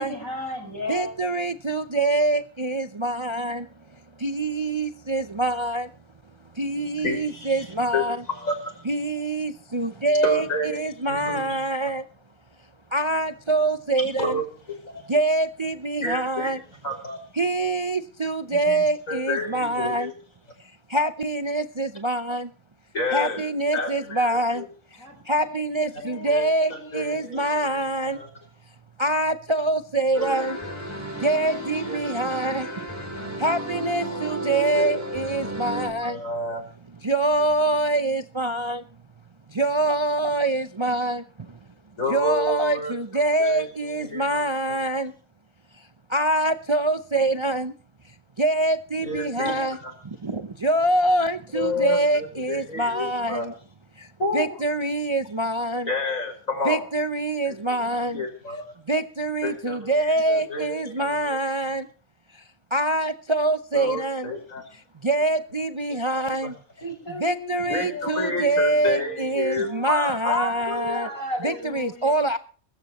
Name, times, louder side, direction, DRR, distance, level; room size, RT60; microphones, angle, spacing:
voice 1, 0.0-1.2 25.0-28.1 66.8-72.1, left 1 dB, 90° left, 4 dB, 6.4 m, -37 dB
voice 2, 0.9-5.9 6.5-8.2 8.8-12.0 12.9-14.4 15.1-16.6 17.3-20.1 20.6-22.5 23.1-24.7 24.9-28.2 29.0-30.6 31.2-32.9 33.3-36.2 37.0-38.8 39.5-41.6 42.1-45.1 45.8-47.7 48.0-49.8 50.0-53.5 54.0-55.9 56.6-58.2 58.9-61.9 62.3-62.4 62.7-64.3 64.9-66.6 67.1-71.1 71.4-72.4, right 2 dB, 30° right, 9 dB, 0.5 m, -25 dB
voice 3, 7.0-7.7 7.9-8.8 10.2-10.8 11.1-11.6 14.2-14.4 14.7-15.0 16.0-16.5 16.8-17.2 18.5-20.1 22.9-24.7 26.3-28.3 30.1-30.7 31.8-32.0 34.5-35.0 36.0-36.6 42.0-42.9 43.4-43.6 44.0-44.4 44.7-44.8 49.0-49.9 51.5-53.5 54.2-54.5 55.8-56.8 57.5-57.9 58.1-58.6 59.4-61.3 63.7-64.6 65.9-66.0 66.4-66.5 67.7-71.1 71.4-71.6, left 2 dB, 75° left, 5 dB, 5.7 m, -30 dB
sound 1, 30.1-35.9, right 1 dB, 10° right, 3.9 m, -33 dB
22.5 x 13.5 x 3.1 m, 0.41 s
omnidirectional pair, 1.4 m